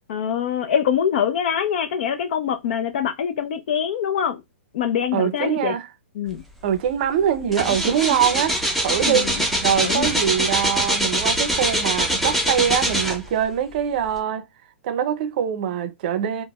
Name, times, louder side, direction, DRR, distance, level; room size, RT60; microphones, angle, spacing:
voice 1, 0.1-4.4 4.7-5.8 6.2-6.4 9.1-9.4 9.8-10.1, left 8 dB, 55° left, 0.5 m, -24 dB
voice 2, 5.1-5.9 6.6-9.3 9.6-14.5 14.8-16.4, right 9 dB, 45° right, 0.5 m, -23 dB
sound 1, 6.7-6.9 7.2-13.5 14.1-14.2, right 1 dB, ahead, 0.5 m, -23 dB
3.9 x 2.1 x 2.3 m
hypercardioid pair, 145°, 7 cm